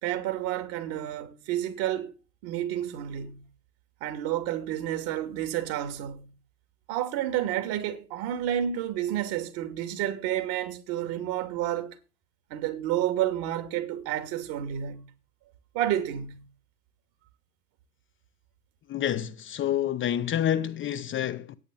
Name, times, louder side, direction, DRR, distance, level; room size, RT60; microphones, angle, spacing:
voice 1, 0.0-2.1 2.4-3.4 4.0-6.3 6.9-12.0 12.5-15.0 15.7-16.4, right 11 dB, 50° right, 2.8 m, -30 dB
voice 2, 18.9-21.6, left 10 dB, 25° left, 0.9 m, -28 dB
11.0 x 9.4 x 7.1 m
figure-of-eight pair, 85°, 46 cm